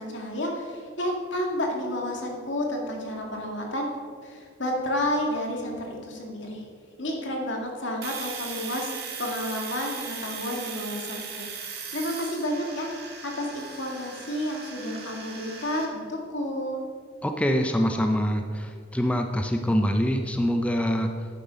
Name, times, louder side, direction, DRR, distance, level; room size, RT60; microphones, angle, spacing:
voice 1, 0.0-3.9 4.2-6.6 7.0-8.9 9.2-12.9 13.2-16.8, left 1 dB, 70° left, 1 dB, 2.0 m, -31 dB
Domestic sounds home sounds, 8.0-15.9, right 6 dB, 55° right, 1.8 m, -38 dB
voice 2, 17.2-21.3, equal, 5° left, 4 dB, 0.5 m, -25 dB
10.5 x 9.2 x 5.1 m, 2.1 s
head